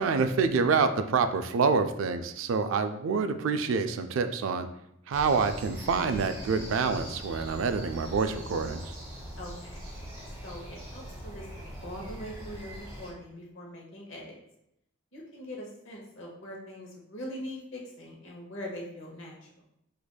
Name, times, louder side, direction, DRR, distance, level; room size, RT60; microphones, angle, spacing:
voice 1, 0.0-4.7 5.1-8.9, right 5 dB, 75° right, 8 dB, 0.3 m, -27 dB
sound 1, 5.1-13.1, equal, 20° right, 1.1 m, -42 dB
voice 2, 9.4-9.8 10.4-14.3 15.1-19.5, equal, 70° left, -1 dB, 0.9 m, -42 dB
4.7 x 2.5 x 2.2 m, 0.79 s
head